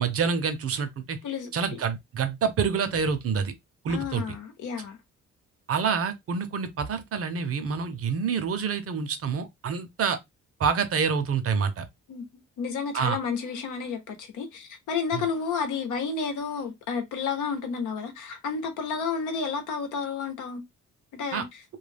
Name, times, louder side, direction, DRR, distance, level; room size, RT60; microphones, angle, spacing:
voice 1, 0.0-1.2 1.5-3.5 3.8-4.2 5.7-10.2 10.6-11.8 12.9-13.2 15.1-15.3 21.3-21.4, right 6 dB, 50° right, 0.7 m, -27 dB
voice 2, 3.9-5.0 12.1-12.3 12.6-20.6 21.1-21.6, left 5 dB, 80° left, 0.9 m, -31 dB
2.3 x 2.2 x 3.3 m
cardioid pair, 90°, 30 cm